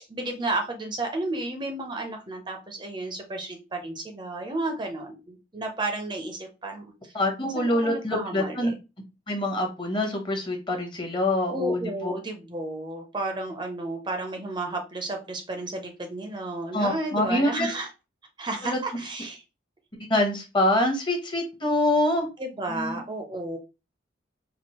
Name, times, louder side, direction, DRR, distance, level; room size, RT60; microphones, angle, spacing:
voice 1, 0.0-7.1 7.5-8.7 11.5-17.9 18.4-19.4 22.4-23.6, right 2 dB, 25° right, 3 dB, 0.6 m, -32 dB
voice 2, 7.1-8.7 9.3-12.1 16.7-17.7 18.6-18.8 20.1-22.3 22.7-23.0, left 1 dB, 25° left, 3 dB, 0.9 m, -25 dB
4.3 x 2.5 x 2.9 m, 0.28 s
head